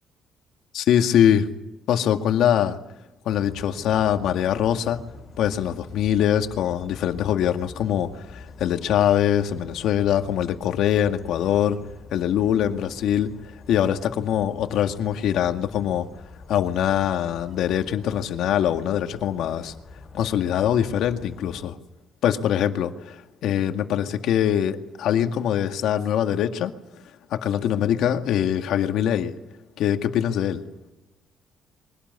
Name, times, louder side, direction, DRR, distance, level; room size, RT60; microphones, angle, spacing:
voice 1, 0.7-1.5 1.9-2.8 3.3-5.0 5.4-11.8 12.1-13.3 13.7-16.1 16.5-19.7 20.1-21.8 22.2-26.7 27.3-29.3 29.8-30.6, left 10 dB, 75° left, 7 dB, 2.0 m, -23 dB
sound 1, 3.3-21.6, left 4 dB, 30° left, 4.2 m, -45 dB
23.5 x 18.0 x 9.5 m, 0.96 s
cardioid pair, 150°, 0 cm